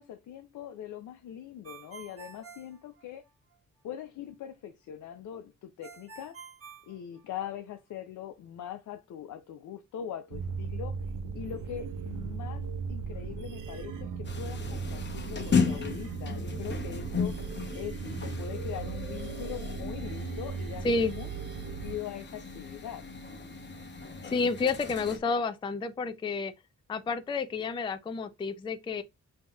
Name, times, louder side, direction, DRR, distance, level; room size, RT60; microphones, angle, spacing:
voice 1, 0.0-3.2 3.8-6.4 6.9-17.4 17.7-18.0 18.2-21.3 21.6-23.0, left 10 dB, 80° left, 0.5 m, -42 dB
Ringtone, 1.6-3.6 5.8-7.7, right 5 dB, 50° right, 1.0 m, -49 dB
sound 1, 10.3-22.0, right 5 dB, 90° right, 0.6 m, -37 dB
sound 2, 14.2-25.2, left 5 dB, 35° left, 0.8 m, -35 dB
voice 2, 24.3-26.5 26.9-29.0, left 4 dB, 15° left, 0.3 m, -30 dB
5.3 x 2.8 x 2.3 m
cardioid pair, 110°, 30 cm